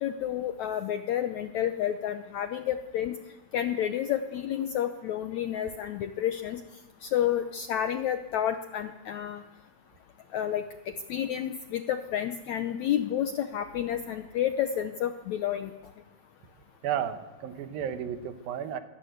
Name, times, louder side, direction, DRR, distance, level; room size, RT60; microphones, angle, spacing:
voice 1, 0.0-3.2 3.5-6.6 7.0-9.4 10.3-15.7, left 10 dB, 75° left, 9 dB, 1.7 m, -30 dB
voice 2, 16.8-18.8, right 9 dB, 75° right, 9 dB, 3.0 m, -33 dB
24.0 x 18.0 x 8.0 m, 1.2 s
omnidirectional pair, 4.2 m